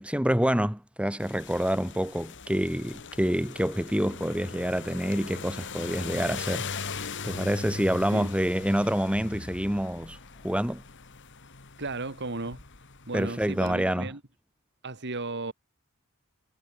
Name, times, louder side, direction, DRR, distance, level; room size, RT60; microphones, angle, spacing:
voice 1, 0.0-6.7 7.2-10.2 10.4-10.8 13.1-14.1, equal, 5° right, 2.1 m, -27 dB
sound 1, 1.2-13.7, left 4 dB, 55° left, 2.2 m, -40 dB
voice 2, 11.8-12.6 13.1-14.2 14.8-15.5, right 2 dB, 50° right, 2.5 m, -34 dB
head